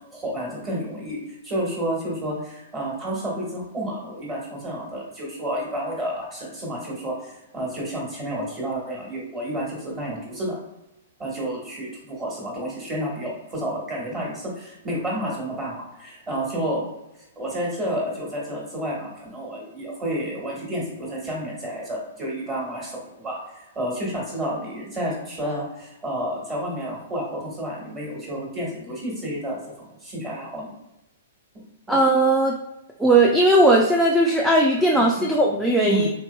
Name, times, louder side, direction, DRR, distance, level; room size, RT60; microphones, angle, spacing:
voice 1, 0.0-10.6 11.2-16.8 17.1-30.7 31.5-32.0 35.0-35.3 35.8-36.1, right 1 dB, 20° right, -3 dB, 1.3 m, -30 dB
voice 2, 31.9-32.5 33.0-36.1, right 1 dB, 5° right, -2 dB, 0.3 m, -18 dB
3.7 x 2.9 x 2.2 m, 0.91 s
hypercardioid pair, 150°, 0 cm